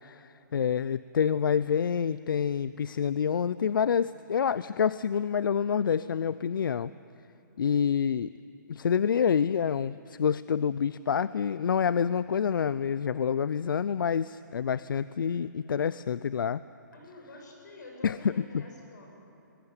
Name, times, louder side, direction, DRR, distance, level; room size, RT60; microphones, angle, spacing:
voice 1, 0.0-6.9 7.6-8.3 8.7-16.6 18.0-18.2 18.5-18.6, left 7 dB, 85° left, 17 dB, 0.5 m, -27 dB
voice 2, 16.9-19.1, left 2 dB, 60° left, 0 dB, 7.9 m, -48 dB
21.0 x 20.0 x 9.7 m, 2.8 s
hypercardioid pair, 175°, 11 cm